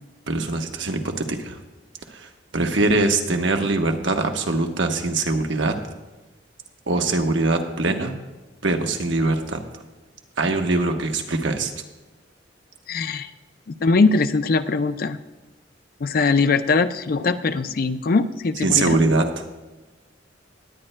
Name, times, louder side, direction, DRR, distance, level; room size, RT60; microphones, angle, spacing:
voice 1, 0.3-1.6 2.1-5.8 6.9-8.1 8.6-9.6 10.4-11.7 18.6-19.2, right 2 dB, 75° right, 4 dB, 1.1 m, -22 dB
voice 2, 12.9-13.3 13.8-15.2 16.0-19.0, left 4 dB, 50° left, 11 dB, 0.4 m, -21 dB
19.0 x 9.9 x 2.2 m, 1.2 s
head